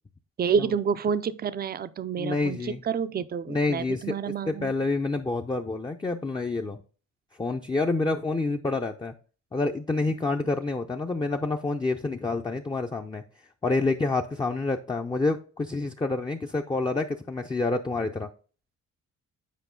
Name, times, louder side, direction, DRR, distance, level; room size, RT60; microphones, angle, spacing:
voice 1, 0.4-4.7, right 6 dB, 30° right, 0.5 m, -28 dB
voice 2, 2.2-2.8 3.5-4.1 4.5-6.8 7.4-9.1 9.5-13.2 13.6-18.3, left 3 dB, 15° left, 0.5 m, -28 dB
8.3 x 4.9 x 3.7 m
cardioid pair, 90°, 30 cm